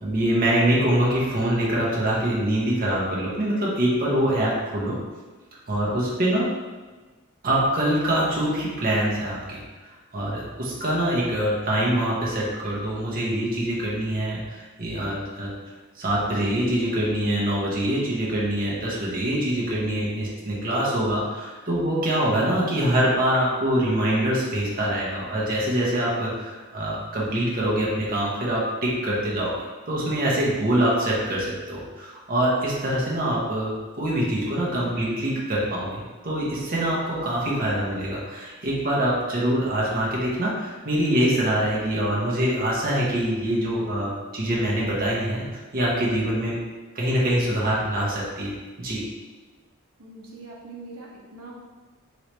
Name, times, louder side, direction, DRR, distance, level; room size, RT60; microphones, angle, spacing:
voice 1, 0.0-5.0 5.7-6.5 7.4-9.6 10.1-15.5 16.0-29.5 29.9-45.4 45.7-46.6 46.9-48.5 48.8-49.0, right 1 dB, 40° right, -5 dB, 0.7 m, -24 dB
voice 2, 50.0-51.5, right 3 dB, 80° right, -3 dB, 0.7 m, -42 dB
3.1 x 3.0 x 3.0 m, 1.3 s
head